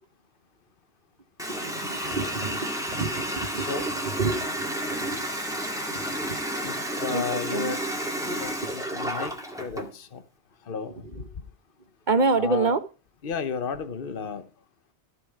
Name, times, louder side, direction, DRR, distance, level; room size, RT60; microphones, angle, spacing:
Water tap faucet, 1.4-9.9, equal, 5° right, 2.1 m, -31 dB
voice 1, 1.5-5.3 5.9-6.7 7.1-7.7 8.6-8.7 11.1-11.3 12.1-12.8, right 3 dB, 45° right, 1.1 m, -29 dB
voice 2, 3.5-3.9 6.6-6.7 7.0-7.8 8.4-10.2 10.7-11.0 12.4-12.7 13.2-14.4, left 6 dB, 55° left, 1.2 m, -33 dB
14.0 x 6.9 x 4.7 m
omnidirectional pair, 1.1 m